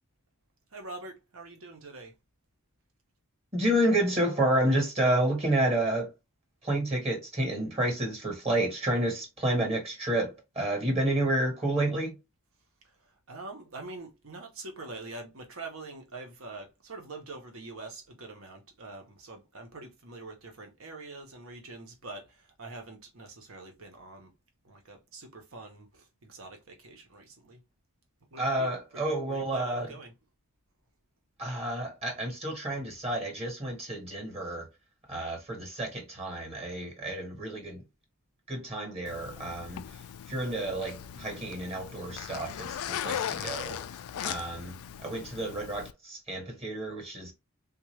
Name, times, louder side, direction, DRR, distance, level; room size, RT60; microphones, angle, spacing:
voice 1, 0.7-2.1 12.8-24.3 24.6-27.6 28.3-30.2, right 2 dB, 70° right, 1.0 m, -45 dB
voice 2, 3.5-6.1 6.6-12.2 28.4-29.9 31.4-34.7 35.1-37.8 38.5-43.9 44.2-47.3, right 1 dB, 30° right, 1.2 m, -30 dB
Zipper (clothing), 39.1-45.9, left 9 dB, 85° left, 0.3 m, -38 dB
3.6 x 2.6 x 3.2 m
head